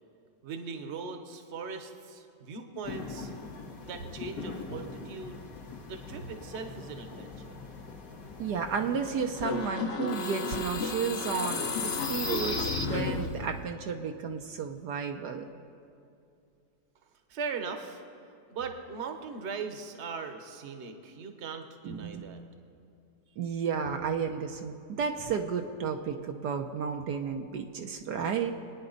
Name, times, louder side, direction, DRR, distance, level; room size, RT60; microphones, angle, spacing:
voice 1, 0.4-3.3 3.8-5.4 5.9-7.6 17.3-18.0 18.5-22.4, right 5 dB, 45° right, 6 dB, 1.2 m, -39 dB
sound 1, 2.8-9.7, left 4 dB, 80° left, 2.3 m, -43 dB
voice 2, 8.4-15.4 21.8-22.2 23.4-28.5, right 6 dB, 70° right, 4 dB, 1.3 m, -32 dB
sound 2, 9.3-13.6, left 3 dB, 45° left, 1.0 m, -32 dB
26.5 x 9.7 x 4.0 m, 2.6 s
omnidirectional pair, 1.9 m